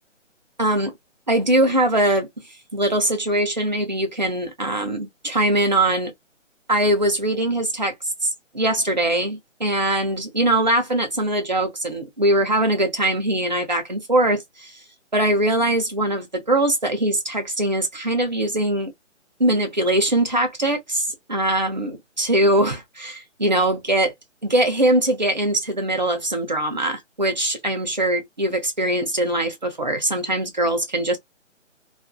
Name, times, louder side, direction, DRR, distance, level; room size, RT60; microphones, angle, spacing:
voice 1, 0.6-0.9 1.3-2.3 2.7-6.1 6.7-7.9 8.2-8.3 8.5-14.8 15.1-18.9 19.4-24.1 24.4-31.2, right 1 dB, 35° right, 0.5 m, -22 dB
2.5 x 2.4 x 2.3 m
hypercardioid pair, 175°, 38 cm